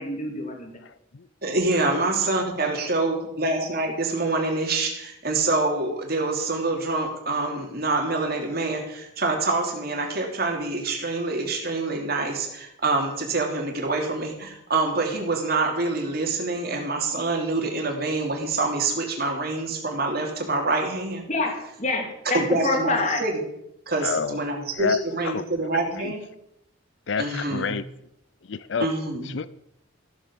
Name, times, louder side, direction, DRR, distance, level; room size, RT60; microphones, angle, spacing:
voice 1, 0.0-0.7 21.3-23.2, left 2 dB, 35° left, 2.5 m, -26 dB
voice 2, 0.8-1.3 1.9-2.0 24.0-24.4 24.8-26.1 27.1-27.8 28.4-28.9 29.2-29.5, left 5 dB, 65° left, 0.5 m, -29 dB
voice 3, 1.4-21.3 22.3-23.5 23.9-26.2 27.2-27.7 28.8-29.3, right 3 dB, 50° right, 3.1 m, -26 dB
15.0 x 8.0 x 7.1 m
head